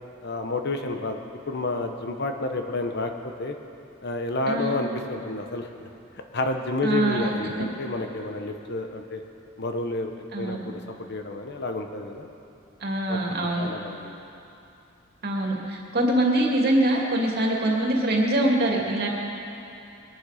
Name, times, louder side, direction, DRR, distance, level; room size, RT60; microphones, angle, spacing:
voice 1, 0.2-1.2 1.5-3.6 4.0-5.9 6.3-9.2 9.6-10.8 11.1-12.3 13.1-13.2 13.6-14.3, left 2 dB, 55° left, 5 dB, 1.1 m, -30 dB
voice 2, 4.5-4.8 6.8-7.3 10.3-10.6 12.8-13.7 15.2-19.1, right 1 dB, 50° right, -1 dB, 2.4 m, -23 dB
22.5 x 11.0 x 5.0 m, 2.8 s
head